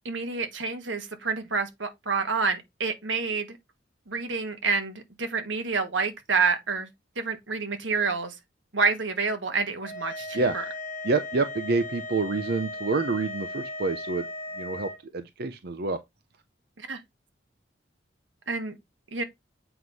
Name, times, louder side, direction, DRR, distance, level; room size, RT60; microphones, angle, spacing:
voice 1, 0.0-3.6 4.1-6.9 7.2-8.3 8.7-10.6 16.8-17.0 18.5-18.8 19.1-19.2, right 4 dB, 90° right, 1.5 m, -28 dB
sound 1, 9.8-15.0, left 2 dB, 50° left, 1.1 m, -37 dB
voice 2, 11.0-14.3 14.6-16.0, right 3 dB, 55° right, 0.6 m, -27 dB
7.9 x 3.1 x 5.4 m
head